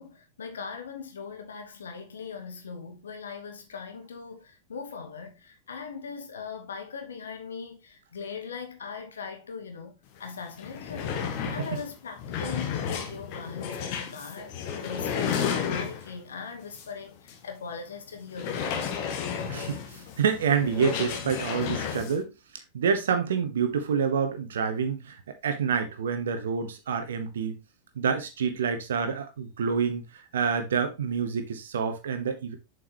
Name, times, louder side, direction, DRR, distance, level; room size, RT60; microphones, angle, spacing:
voice 1, 0.0-19.0, left 5 dB, 65° left, 1.3 m, -40 dB
sound 1, 10.2-10.3 10.5-16.2 16.7-16.9 17.3-17.4 18.3-22.2, left 7 dB, 45° left, 1.2 m, -32 dB
voice 2, 19.5-22.3 22.7-25.2 25.4-27.6 28.0-30.0 30.3-32.6, right 6 dB, 65° right, 1.3 m, -27 dB
7.4 x 5.3 x 3.0 m
figure-of-eight pair, 90°, 0 cm